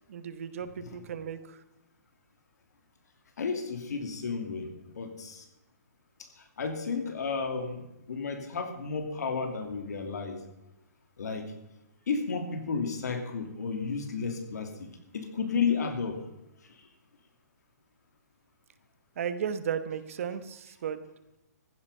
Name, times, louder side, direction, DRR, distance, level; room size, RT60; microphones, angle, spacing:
voice 1, 0.1-1.6 19.2-21.0, right 8 dB, 50° right, 12 dB, 1.2 m, -35 dB
voice 2, 3.4-4.7 4.9-5.4 6.2-6.3 6.6-10.4 11.2-11.5 12.1-14.9 15.1-16.2, left 5 dB, 70° left, 6 dB, 2.8 m, -32 dB
15.0 x 10.5 x 5.5 m, 0.93 s
hypercardioid pair, 160°, 9 cm